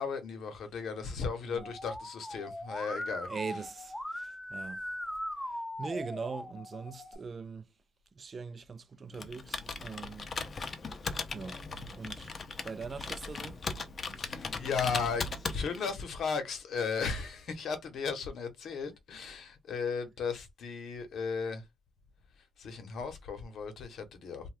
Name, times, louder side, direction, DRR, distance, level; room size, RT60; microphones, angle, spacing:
voice 1, 0.0-3.3 14.1-21.6 22.6-24.5, left 5 dB, 70° left, 0.9 m, -35 dB
Musical instrument, 1.6-7.1, left 1 dB, 5° left, 0.7 m, -40 dB
voice 2, 3.3-4.8 5.8-7.6 8.2-10.3 11.3-11.6 11.9-12.3 12.6-13.6, right 5 dB, 40° right, 0.4 m, -41 dB
Computer keyboard, 9.1-16.0, left 4 dB, 40° left, 0.5 m, -38 dB
2.6 x 2.2 x 3.3 m
cardioid pair, 90°, 0 cm